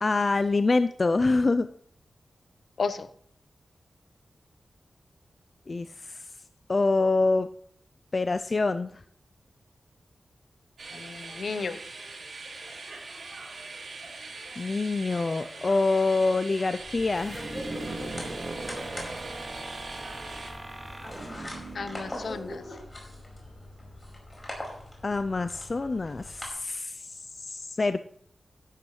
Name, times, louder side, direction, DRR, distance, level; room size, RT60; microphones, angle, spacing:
voice 1, 0.0-1.7 5.7-6.2 6.7-7.5 8.1-8.9 14.6-17.5 25.0-28.0, left 3 dB, 40° left, 11 dB, 0.4 m, -26 dB
sound 1, 10.8-20.5, right 3 dB, 65° right, 4.0 m, -42 dB
voice 2, 10.9-11.8 21.7-22.6, left 4 dB, 70° left, 13 dB, 0.7 m, -33 dB
sound 2, 16.8-26.5, left 1 dB, 20° left, 4.9 m, -42 dB
sound 3, 17.1-22.8, right 2 dB, 35° right, 1.9 m, -39 dB
12.5 x 11.5 x 3.1 m, 0.64 s
wide cardioid pair, 100°, 0 cm